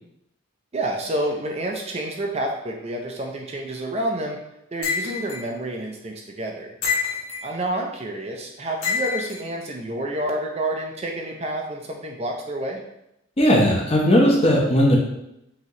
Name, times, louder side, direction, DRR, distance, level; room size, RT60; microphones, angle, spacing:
voice 1, 0.7-4.4 4.7-6.7 7.4-12.8, right 1 dB, 30° right, 1 dB, 0.5 m, -29 dB
sound 1, 4.8-5.4 6.8-7.5 8.8-9.4, left 6 dB, 70° left, 1.2 m, -26 dB
voice 2, 13.4-15.0, equal, 30° left, -1 dB, 0.8 m, -17 dB
5.7 x 2.9 x 2.9 m, 0.83 s
head